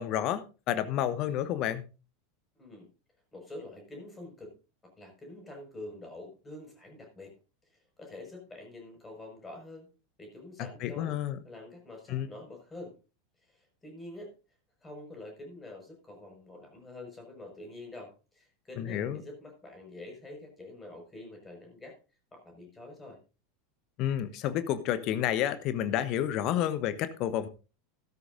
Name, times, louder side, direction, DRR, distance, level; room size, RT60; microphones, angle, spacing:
voice 1, 0.0-1.9 10.6-11.4 12.1-12.3 18.8-19.2 24.0-27.5, left 11 dB, 45° left, 12 dB, 1.1 m, -30 dB
voice 2, 2.5-2.9 3.3-4.5 5.0-7.3 7.7-9.9 10.2-11.2 11.4-13.0 13.4-14.3 14.8-22.0 22.3-23.2, left 2 dB, 15° left, 2 dB, 5.7 m, -46 dB
13.5 x 13.0 x 2.6 m, 0.33 s
figure-of-eight pair, 80°, 0 cm